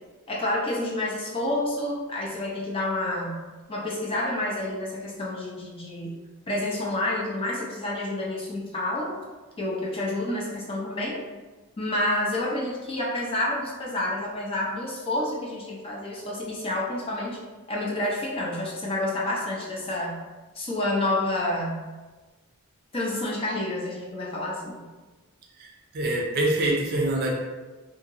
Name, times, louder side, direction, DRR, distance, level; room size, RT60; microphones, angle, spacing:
voice 1, 0.3-3.4 3.7-6.2 6.5-9.1 9.6-11.2 11.8-17.4 17.7-20.2 20.5-21.8 22.9-24.8, left 1 dB, 25° left, -4 dB, 0.5 m, -29 dB
voice 2, 25.9-27.3, right 1 dB, 45° right, -1 dB, 0.5 m, -24 dB
2.8 x 2.7 x 2.5 m, 1.2 s
head